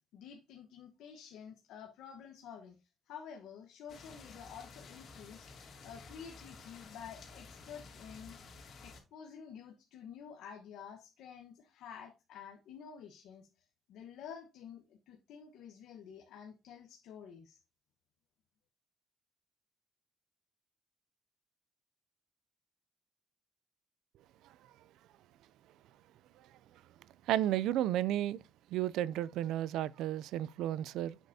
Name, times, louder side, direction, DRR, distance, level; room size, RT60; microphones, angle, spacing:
voice 1, 0.1-2.8 3.1-5.5 5.8-8.4 8.8-17.6, left 7 dB, 85° left, 1.1 m, -50 dB
sound 1, 3.9-9.0, left 4 dB, 60° left, 2.5 m, -53 dB
voice 2, 27.3-28.4 28.7-31.2, right 12 dB, 90° right, 0.4 m, -32 dB
8.0 x 6.6 x 2.7 m
cardioid pair, 90°, 0 cm